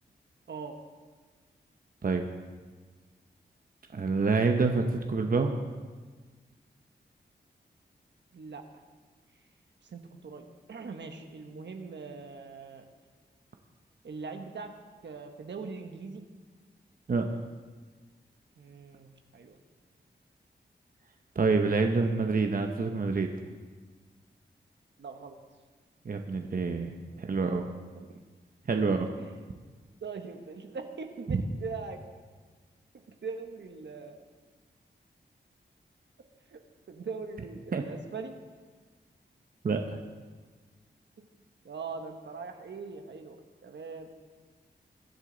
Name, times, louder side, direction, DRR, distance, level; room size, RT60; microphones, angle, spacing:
voice 1, 3.9-5.5 17.1-17.3 21.3-23.3 26.0-26.9 27.2-27.7 28.7-29.1 31.3-31.4 37.7-37.8 39.6-39.8, right 4 dB, 50° right, 4 dB, 0.9 m, -27 dB
voice 2, 8.3-8.6 9.8-12.8 14.0-14.7 15.0-16.2 18.6-19.6 25.0-25.4 27.1-27.2 28.0-28.2 29.2-29.5 30.0-32.0 32.9-34.2 36.5-36.6 36.9-38.4 41.6-44.2, right 4 dB, 75° right, 5 dB, 1.2 m, -41 dB
21.5 x 8.2 x 4.0 m, 1.4 s
cardioid pair, 60°, 19 cm